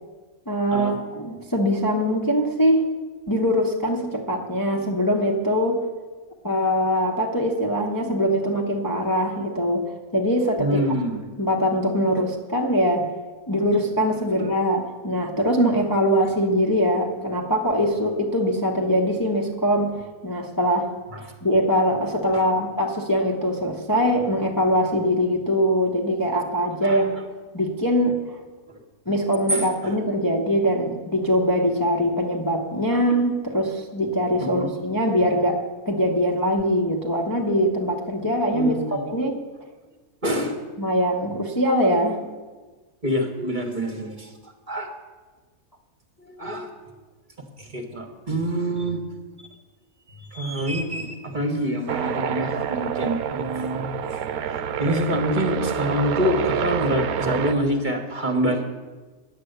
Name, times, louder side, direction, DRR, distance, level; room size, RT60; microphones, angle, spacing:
voice 1, 0.5-2.8 3.3-5.8 6.4-10.8 11.4-13.1 13.5-20.0 20.2-20.9 21.2-27.1 27.5-28.2 29.1-39.4 40.8-42.2, equal, 15° left, 0 dB, 0.9 m, -22 dB
voice 2, 10.6-11.2 14.3-14.4 22.3-22.4 26.8-27.2 29.5-30.0 34.4-34.7 38.5-39.0 40.2-40.6 43.0-44.9 46.3-46.7 47.6-49.1 50.1-54.0 54.8-58.6, equal, 35° right, 3 dB, 1.3 m, -26 dB
sound 1, 51.9-57.5, right 8 dB, 85° right, 1.2 m, -27 dB
10.5 x 7.6 x 7.9 m, 1.3 s
omnidirectional pair, 1.5 m